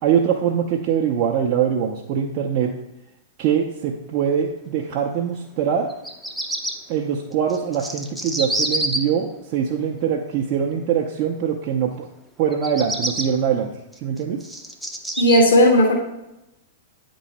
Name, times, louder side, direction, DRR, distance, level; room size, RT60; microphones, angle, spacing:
voice 1, 0.0-2.7 3.4-5.9 6.9-12.1 12.4-13.7 14.0-14.4, right 8 dB, 40° right, -1 dB, 0.6 m, -23 dB
Bird vocalization bird call bird song, 5.9-6.7 7.5-9.0 12.5-13.3 13.9-15.4, right 1 dB, ahead, 0.6 m, -26 dB
voice 2, 15.2-15.9, left 1 dB, 70° left, 2 dB, 1.3 m, -14 dB
8.9 x 3.1 x 4.2 m, 0.90 s
figure-of-eight pair, 100°, 0 cm